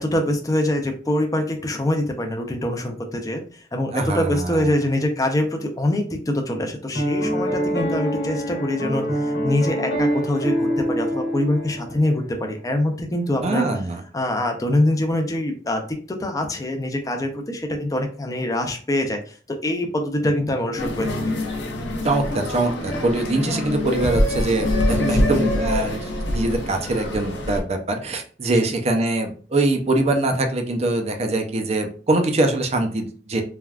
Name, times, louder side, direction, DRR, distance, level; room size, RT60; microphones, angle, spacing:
voice 1, 0.1-3.4 3.7-13.7 14.1-19.2 19.6-21.2 25.1-25.4, left 1 dB, 20° left, 4 dB, 0.5 m, -24 dB
voice 2, 3.9-4.7 13.4-14.0 22.0-33.4, right 2 dB, 35° right, 5 dB, 0.5 m, -23 dB
Piano, 6.9-12.2, equal, 65° left, 1.0 m, -25 dB
sound 1, 20.8-27.6, left 1 dB, 80° left, 0.7 m, -24 dB
3.3 x 2.3 x 2.3 m, 0.41 s
head